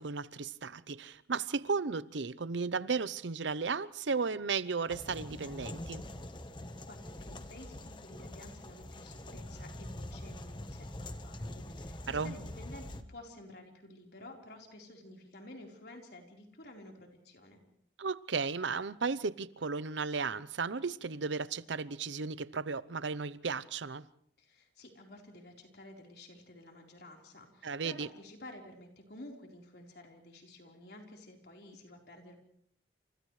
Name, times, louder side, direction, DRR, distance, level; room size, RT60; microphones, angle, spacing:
voice 1, 0.0-6.0 12.1-12.3 18.0-24.0 27.6-28.1, right 4 dB, 85° right, 0.7 m, -35 dB
sound 1, 4.9-13.0, left 1 dB, 25° left, 1.2 m, -44 dB
voice 2, 6.9-17.6 24.4-32.4, left 1 dB, 65° left, 4.2 m, -52 dB
29.0 x 28.0 x 3.3 m
head